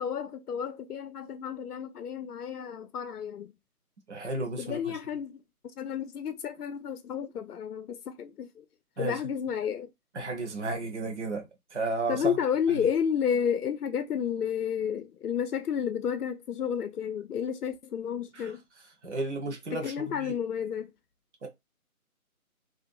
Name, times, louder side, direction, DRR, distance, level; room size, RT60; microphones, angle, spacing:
voice 1, 0.0-3.5 4.6-5.4 5.8-8.7 9.0-9.9 12.1-18.6 19.7-20.9, left 8 dB, 85° left, 0.6 m, -31 dB
voice 2, 4.1-5.0 9.0-9.2 10.1-12.2 18.3-18.5 19.0-19.9 20.2-20.3 21.4-21.5, right 3 dB, 50° right, 0.7 m, -33 dB
2.4 x 2.2 x 2.5 m
figure-of-eight pair, 170°, 45 cm